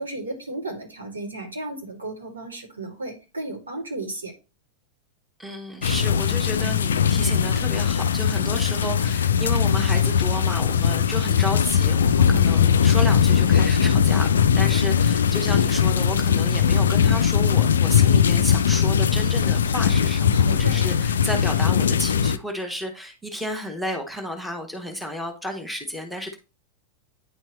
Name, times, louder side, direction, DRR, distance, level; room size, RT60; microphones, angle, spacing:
voice 1, 0.0-4.3 20.3-20.9, right 2 dB, 75° right, -1 dB, 2.4 m, -34 dB
voice 2, 5.4-26.4, equal, 5° right, 3 dB, 1.1 m, -32 dB
sound 1, 5.8-22.4, left 7 dB, 65° left, 0.3 m, -20 dB
9.4 x 4.4 x 3.0 m, 0.31 s
figure-of-eight pair, 90°, 0 cm